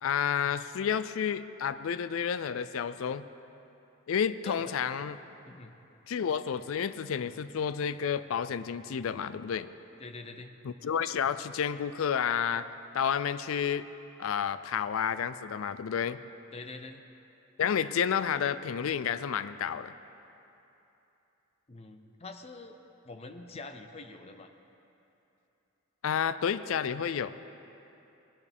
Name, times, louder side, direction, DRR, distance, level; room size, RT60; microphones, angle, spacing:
voice 1, 0.0-3.3 4.1-5.2 6.1-9.7 10.6-12.7 12.9-13.9 14.2-16.2 17.6-19.9 26.0-27.3, left 7 dB, 70° left, 14 dB, 0.4 m, -30 dB
voice 2, 10.0-10.5 16.5-17.0 21.7-22.7 23.0-24.5, left 3 dB, 30° left, 6 dB, 0.6 m, -45 dB
19.0 x 11.0 x 3.5 m, 2.9 s
head